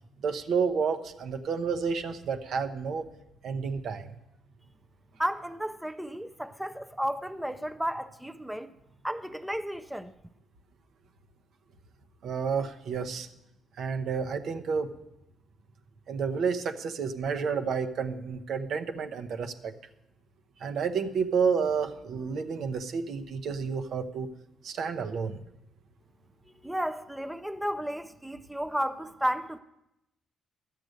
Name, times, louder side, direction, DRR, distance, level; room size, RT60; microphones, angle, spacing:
voice 1, 0.2-3.0 3.4-4.1 12.2-13.3 13.8-14.9 16.1-19.7 20.6-24.3 24.6-25.4, right 5 dB, 70° right, 0.9 m, -30 dB
voice 2, 5.2-8.7 9.0-10.1 26.6-29.6, equal, 5° right, 0.5 m, -33 dB
12.5 x 7.7 x 6.5 m
cardioid pair, 90°, 0 cm